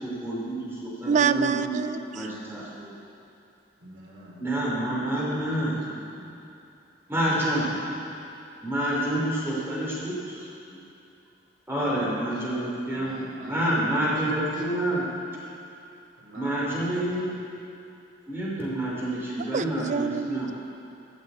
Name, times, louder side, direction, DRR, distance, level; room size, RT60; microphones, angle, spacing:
voice 1, 0.0-1.7 2.1-2.9 4.4-5.8 7.1-7.7 8.6-10.4 10.7-10.8 11.7-13.2 13.4-15.1 16.3-17.2 18.3-20.5, right 1 dB, 15° right, -6 dB, 3.4 m, -28 dB
voice 2, 1.1-2.3 19.4-20.5, right 6 dB, 40° right, 12 dB, 0.4 m, -26 dB
voice 3, 3.8-4.4 5.3-6.3 7.2-8.0 11.8-12.4 12.9-14.6 15.4-15.5 16.2-17.4, right 1 dB, 75° right, -4 dB, 3.2 m, -46 dB
14.0 x 6.5 x 8.3 m, 2.7 s
head